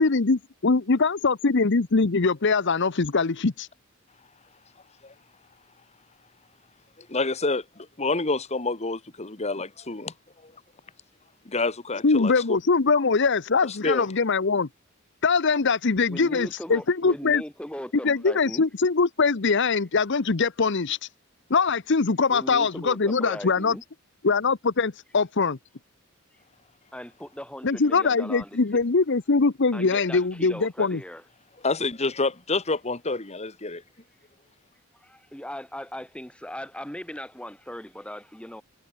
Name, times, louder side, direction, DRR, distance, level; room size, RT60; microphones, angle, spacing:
voice 1, 0.0-3.7 12.0-14.7 15.2-17.4 18.0-21.0 21.5-23.8 24.2-25.6 27.6-31.0, left 4 dB, 55° left, 0.8 m, -22 dB
voice 2, 7.0-10.1 10.4-10.5 11.4-12.6 13.6-14.1 31.6-33.8, left 3 dB, 30° left, 1.7 m, -28 dB
voice 3, 16.1-18.7 22.3-23.8 26.9-28.6 29.7-31.2 35.0-38.6, equal, 5° left, 3.7 m, -38 dB
head